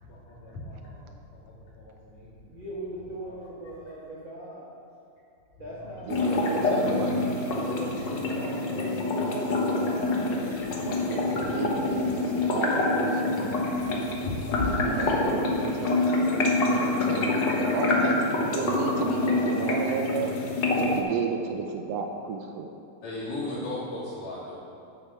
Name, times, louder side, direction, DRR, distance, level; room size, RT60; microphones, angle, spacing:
voice 1, 0.1-3.8 5.6-6.3 11.5-12.2 13.5-13.9 14.2-15.3 15.6-15.7 23.0-24.6, left 2 dB, 75° left, -8 dB, 4.6 m, -38 dB
voice 2, 2.4-4.8 5.6-10.0 12.5-13.2, right 1 dB, 40° right, -8 dB, 2.2 m, -39 dB
voice 3, 6.0-7.2 10.8-13.4 14.7-17.2 17.6-20.3 20.7-22.7, right 5 dB, 85° right, 4 dB, 1.4 m, -33 dB
sound 1, 6.1-21.0, left 2 dB, 60° left, 1.2 m, -26 dB
9.2 x 7.7 x 6.7 m, 2.7 s
omnidirectional pair, 3.8 m